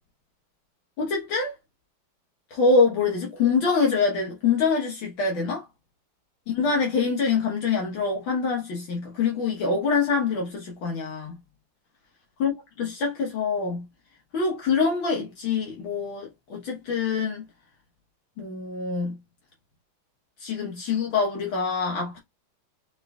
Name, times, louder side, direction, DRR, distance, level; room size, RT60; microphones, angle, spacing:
voice 1, 1.0-1.6 2.5-5.7 6.5-11.4 12.4-13.9 14.3-17.5 18.4-19.2 20.4-22.2, left 4 dB, 65° left, 2.0 m, -25 dB
6.8 x 3.3 x 2.4 m
omnidirectional pair, 2.3 m